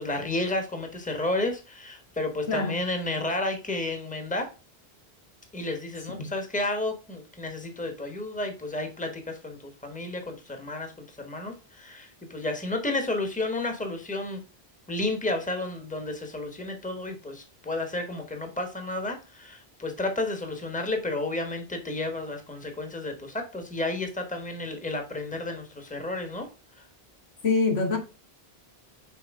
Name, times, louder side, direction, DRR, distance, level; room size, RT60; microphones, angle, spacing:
voice 1, 0.0-4.5 5.5-14.4 14.9-26.5 26.7-26.8, left 2 dB, 10° left, 1.2 m, -32 dB
voice 2, 27.4-28.0, left 4 dB, 85° left, 1.9 m, -24 dB
6.2 x 4.3 x 3.6 m
omnidirectional pair, 1.1 m